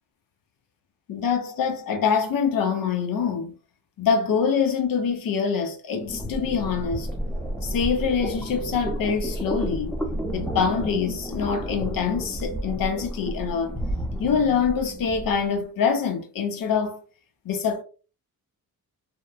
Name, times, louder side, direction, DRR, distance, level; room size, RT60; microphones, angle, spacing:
voice 1, 1.1-3.5 4.0-7.1 7.6-10.1 10.3-13.8 14.2-17.0 17.4-17.8, left 6 dB, 65° left, 0.7 m, -25 dB
sound 1, 6.0-15.4, right 1 dB, 5° left, 0.7 m, -31 dB
2.8 x 2.2 x 2.3 m
cardioid pair, 80°, 36 cm